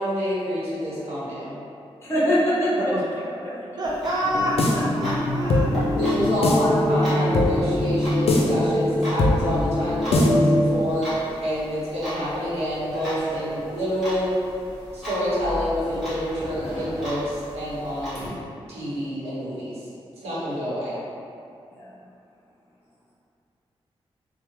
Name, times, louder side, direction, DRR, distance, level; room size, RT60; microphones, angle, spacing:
voice 1, 0.0-1.5 6.0-14.3 14.9-18.2 18.7-19.8 20.2-20.9, equal, 85° right, -10 dB, 1.0 m, -27 dB
voice 2, 2.0-2.7 5.1-5.6 21.7-21.9, equal, 25° left, -8 dB, 0.8 m, -23 dB
voice 3, 2.8-5.7, equal, 40° right, -5 dB, 0.4 m, -28 dB
Clock, 3.8-18.3, equal, ahead, 1.2 m, -37 dB
sound 1, 4.2-10.8, left 1 dB, 75° left, 0.4 m, -21 dB
3.3 x 2.1 x 3.1 m, 2.6 s
wide cardioid pair, 160°, 10 cm